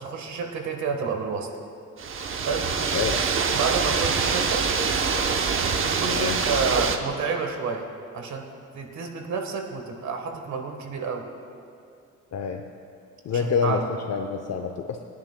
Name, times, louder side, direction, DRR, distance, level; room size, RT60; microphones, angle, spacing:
voice 1, 0.0-1.5 2.4-2.7 3.5-4.6 5.9-7.8 8.1-8.5 8.7-11.2 13.3-13.8, right 5 dB, 65° right, 3 dB, 1.4 m, -29 dB
sound 1, 2.0-7.0, right 5 dB, 45° right, 0.9 m, -25 dB
voice 2, 12.3-12.6 13.2-15.0, left 5 dB, 60° left, 4 dB, 0.7 m, -27 dB
21.5 x 10.5 x 2.2 m, 2.5 s
cardioid pair, 90°, 30 cm